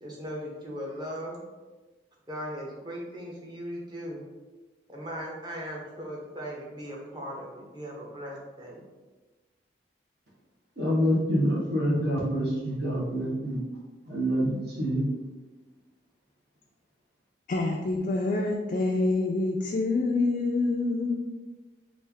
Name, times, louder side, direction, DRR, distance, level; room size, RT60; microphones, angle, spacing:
voice 1, 0.0-1.4 2.3-4.2 4.9-8.8, equal, 25° right, -3 dB, 0.7 m, -38 dB
voice 2, 10.8-13.6 14.1-15.1, equal, 65° right, -6 dB, 1.1 m, -26 dB
voice 3, 17.5-21.1, left 2 dB, 45° left, -1 dB, 0.3 m, -26 dB
3.2 x 2.5 x 3.4 m, 1.2 s
head